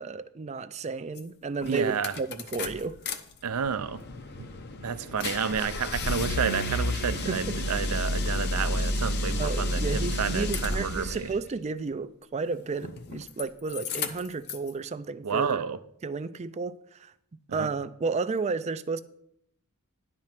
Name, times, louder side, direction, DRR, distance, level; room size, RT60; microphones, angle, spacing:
voice 1, 0.0-3.0 7.3-7.5 9.4-15.6 16.0-17.1 17.5-19.0, right 4 dB, 30° right, 0.4 m, -32 dB
sound 1, 1.2-1.3 1.6-3.2 3.5-11.2 12.7-13.4 13.7-14.7, left 1 dB, 50° left, 0.8 m, -31 dB
voice 2, 1.7-2.1 3.4-4.0 4.4-4.5 4.8-11.3 15.2-15.8 17.5-17.7, right 6 dB, 80° right, 0.6 m, -30 dB
10.5 x 4.4 x 7.4 m
head